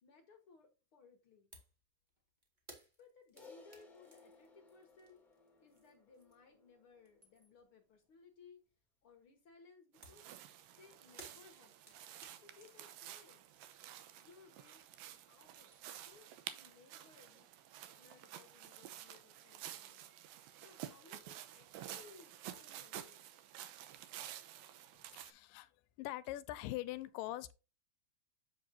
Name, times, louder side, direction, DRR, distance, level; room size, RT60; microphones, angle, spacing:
voice 1, 0.0-1.5 3.0-5.3 5.6-8.6 9.0-10.3 10.7-12.0 12.4-13.4 14.2-14.8 15.3-17.5 18.0-20.2 20.6-23.3, left 4 dB, 55° left, 1.6 m, -63 dB
sound 1, 1.5-1.8 2.1-6.6 6.9-7.7 10.0-15.1 15.4-16.2, right 1 dB, 20° right, 1.3 m, -62 dB
Crash cymbal, 3.4-7.9, left 4 dB, ahead, 1.9 m, -62 dB
sound 2, 10.0-25.3, right 11 dB, 85° right, 2.6 m, -51 dB
voice 2, 25.1-25.7 26.0-27.5, left 15 dB, 85° left, 2.2 m, -42 dB
7.6 x 7.5 x 2.7 m
omnidirectional pair, 4.0 m